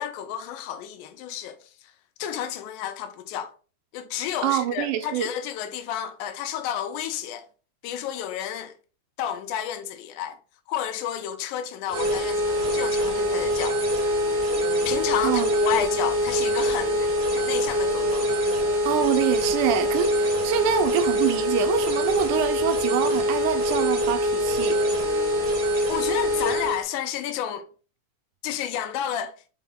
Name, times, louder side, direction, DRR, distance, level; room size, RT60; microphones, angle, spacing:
voice 1, 0.0-1.6 2.2-3.5 3.9-7.5 7.8-8.7 9.2-10.4 10.7-13.8 14.9-18.3 25.7-27.7 28.4-29.3, left 10 dB, 85° left, 2.0 m, -31 dB
voice 2, 4.4-5.3 15.2-15.5 18.9-24.8, right 10 dB, 85° right, 2.1 m, -25 dB
sound 1, 11.9-26.8, equal, 65° right, 1.0 m, -24 dB
5.1 x 2.0 x 3.6 m
omnidirectional pair, 3.5 m